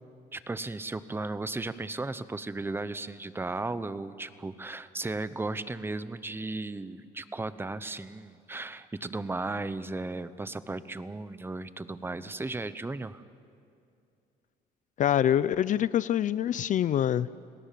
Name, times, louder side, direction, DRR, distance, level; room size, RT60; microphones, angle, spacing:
voice 1, 0.3-13.2, right 2 dB, 15° right, 14 dB, 1.0 m, -35 dB
voice 2, 15.0-17.3, left 10 dB, 50° left, 17 dB, 0.5 m, -25 dB
29.5 x 19.0 x 7.6 m, 2.5 s
cardioid pair, 110°, 17 cm